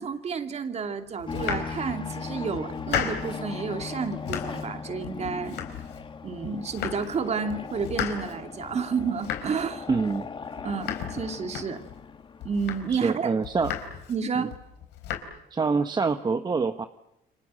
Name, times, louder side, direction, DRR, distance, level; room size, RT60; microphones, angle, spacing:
voice 1, 0.0-5.6 6.2-9.9 10.6-11.8 12.4-13.3 14.1-14.5, right 5 dB, 40° right, 7 dB, 2.7 m, -30 dB
Domestic sounds home sounds, 1.2-2.2 2.5-3.4 3.8-4.7 5.0-6.1 6.4-7.2 7.5-12.0 12.4-13.1 13.4-14.2 14.5-15.2, left 9 dB, 85° left, 4.1 m, -35 dB
sound 1, 1.3-13.4, left 5 dB, 30° left, 1.5 m, -38 dB
voice 2, 9.9-10.3 12.9-13.8 14.3-14.5 15.5-16.9, right 4 dB, 25° right, 9 dB, 1.1 m, -26 dB
29.5 x 24.5 x 7.6 m, 0.87 s
cardioid pair, 110°, 17 cm